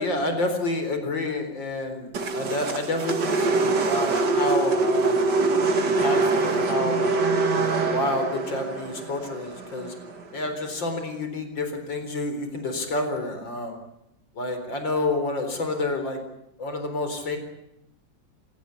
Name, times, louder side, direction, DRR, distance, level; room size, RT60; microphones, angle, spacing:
voice 1, 0.0-5.3 5.8-7.2 7.5-9.9 10.3-13.8 14.4-16.2 16.6-17.4, left 2 dB, 85° left, 7 dB, 4.9 m, -29 dB
sound 1, 2.1-10.4, right 3 dB, 65° right, 2.8 m, -24 dB
27.5 x 17.5 x 9.7 m, 0.83 s
omnidirectional pair, 2.0 m